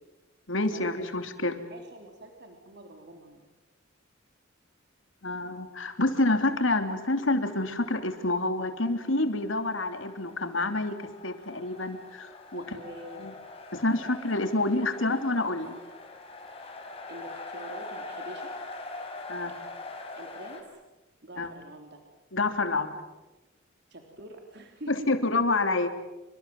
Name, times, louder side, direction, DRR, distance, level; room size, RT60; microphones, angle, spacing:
voice 1, 0.5-1.6 5.2-10.9 11.2-12.6 13.2-13.3 13.7-15.7 19.3-19.5 21.4-21.5 22.3-23.0 24.9-25.9, left 2 dB, 75° left, 7 dB, 3.2 m, -28 dB
voice 2, 1.7-3.5 12.5-13.3 16.6-16.7 17.1-18.5 19.5-19.6 20.1-20.6 21.2-22.0 23.9-25.1, right 1 dB, 60° right, 3 dB, 3.6 m, -45 dB
sound 1, 9.1-20.6, left 2 dB, 30° left, 5.7 m, -43 dB
29.0 x 25.5 x 7.7 m, 1.1 s
head